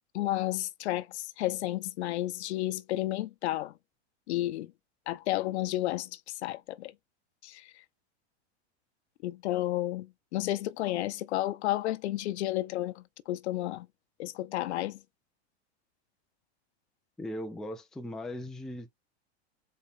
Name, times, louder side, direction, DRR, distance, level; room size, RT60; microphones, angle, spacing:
voice 1, 0.1-3.7 4.3-4.7 5.1-6.9 7.4-7.7 9.2-13.9 14.2-15.0, left 15 dB, 80° left, 0.7 m, -32 dB
voice 2, 17.2-18.9, left 1 dB, ahead, 0.4 m, -38 dB
5.0 x 4.3 x 2.5 m
supercardioid pair, 155°, 33 cm